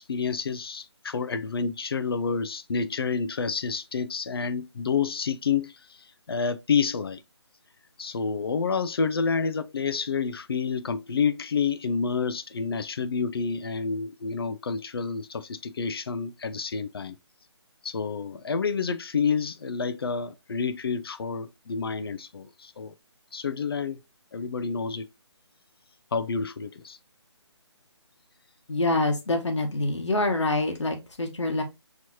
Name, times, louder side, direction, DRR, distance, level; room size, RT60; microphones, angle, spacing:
voice 1, 0.0-7.2 8.0-17.2 17.8-22.9 23.3-24.0 24.3-25.1 26.1-27.0, left 5 dB, 55° left, 0.4 m, -29 dB
voice 2, 28.7-31.6, left 2 dB, 80° left, 1.2 m, -26 dB
4.7 x 3.0 x 2.8 m
figure-of-eight pair, 160°, 15 cm